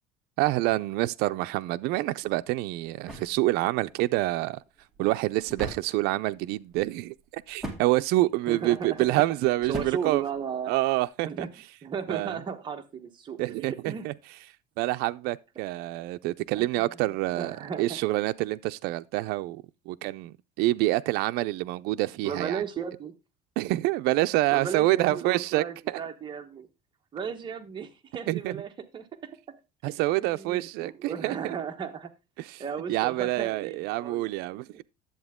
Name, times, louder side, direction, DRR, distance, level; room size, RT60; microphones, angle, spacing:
voice 1, 0.4-4.6 5.0-10.2 10.7-11.3 12.1-12.4 13.4-14.1 14.8-22.6 23.6-26.0 28.3-28.6 29.8-31.6 32.4-32.6 32.9-34.8, right 18 dB, 70° right, 0.4 m, -27 dB
sound 1, 2.2-11.1, right 1 dB, ahead, 2.2 m, -43 dB
voice 2, 8.5-9.4 9.7-10.7 11.3-11.5 11.8-14.1 16.5-17.0 17.4-18.0 22.2-23.1 24.5-26.7 27.1-29.1 29.8-32.1 32.6-34.3 34.7-34.8, right 7 dB, 30° right, 1.2 m, -35 dB
10.5 x 7.8 x 3.6 m
cardioid pair, 150°, 17 cm